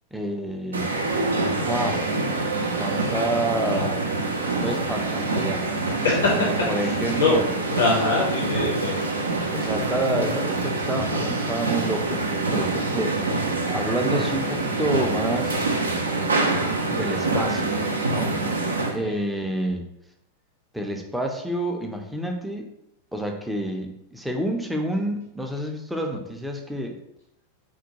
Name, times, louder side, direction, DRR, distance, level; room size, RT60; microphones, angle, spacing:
voice 1, 0.1-0.9 1.7-2.1 2.6-4.0 4.6-5.6 6.4-7.5 9.5-13.2 13.7-15.7 16.9-17.7 18.1-18.3 18.9-19.8 20.7-22.7 23.1-27.0, right 1 dB, 5° right, 3 dB, 0.4 m, -28 dB
sound 1, 0.7-19.0, right 3 dB, 75° right, 0.4 m, -25 dB
voice 2, 6.0-7.4 7.7-9.1 18.7-19.1, left 3 dB, 70° left, -4 dB, 0.6 m, -24 dB
3.6 x 2.1 x 2.8 m, 0.80 s
figure-of-eight pair, 90°, 0 cm